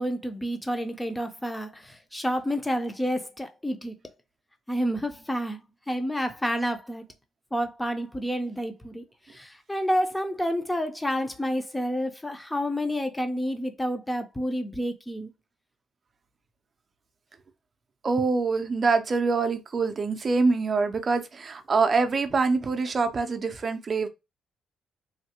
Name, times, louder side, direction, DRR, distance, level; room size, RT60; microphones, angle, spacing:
voice 1, 0.0-4.0 4.7-7.0 7.5-15.3, equal, 10° left, 0.6 m, -29 dB
voice 2, 18.0-24.1, right 4 dB, 40° right, 0.5 m, -25 dB
3.1 x 2.1 x 2.9 m
cardioid pair, 90°, 0 cm